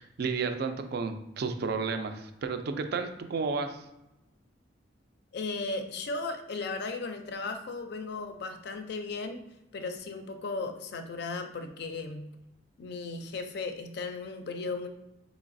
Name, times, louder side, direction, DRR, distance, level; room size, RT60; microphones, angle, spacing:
voice 1, 0.0-3.8, right 4 dB, 55° right, 7 dB, 0.3 m, -32 dB
voice 2, 5.3-9.4 9.7-12.3 12.8-14.9, left 3 dB, 60° left, 7 dB, 0.4 m, -36 dB
3.9 x 3.0 x 2.6 m, 0.91 s
head